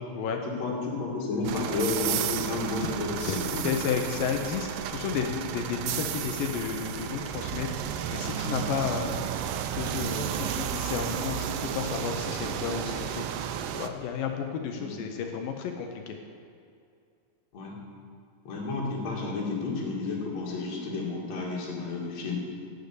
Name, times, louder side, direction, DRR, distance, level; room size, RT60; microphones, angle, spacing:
voice 1, 0.5-3.7 9.1-9.2 14.7-15.0 17.5-17.8 18.4-22.4, left 3 dB, 50° left, -4 dB, 3.2 m, -31 dB
sound 1, 1.4-13.9, right 9 dB, 80° right, 2.0 m, -32 dB
voice 2, 3.2-7.7 8.1-9.2 9.7-13.2 13.7-16.2, left 7 dB, 75° left, 4 dB, 2.3 m, -32 dB
12.0 x 6.6 x 8.4 m, 2.4 s
omnidirectional pair, 4.4 m